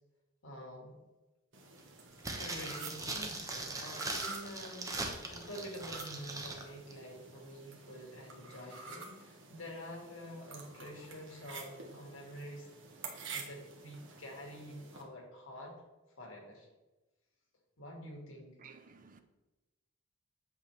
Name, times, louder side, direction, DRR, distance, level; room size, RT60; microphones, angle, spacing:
voice 1, 0.4-1.0 2.4-12.7 13.3-15.8 16.2-16.7 17.8-18.6, equal, 80° left, 2.0 m, -47 dB
sound 1, 1.5-15.0, right 4 dB, 65° right, 1.3 m, -50 dB
sound 2, 2.2-6.6 6.9-7.0, right 2 dB, 15° right, 0.9 m, -40 dB
voice 2, 18.6-19.2, right 5 dB, 40° right, 0.7 m, -55 dB
8.2 x 5.9 x 3.2 m
head